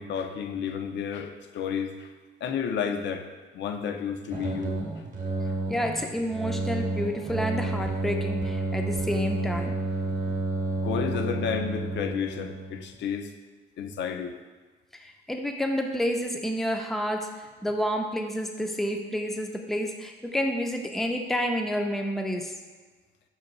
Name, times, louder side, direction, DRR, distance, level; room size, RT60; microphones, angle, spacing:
voice 1, 0.0-2.1 2.4-3.3 3.5-4.8 10.0-10.4 10.8-13.3 13.8-14.4, left 7 dB, 65° left, 6 dB, 0.5 m, -31 dB
sound 1, 4.3-12.9, right 2 dB, 40° right, 0.8 m, -30 dB
voice 2, 5.7-9.7 14.9-22.5, equal, ahead, 3 dB, 0.4 m, -29 dB
5.7 x 2.2 x 3.8 m, 1.4 s
cardioid pair, 90°, 20 cm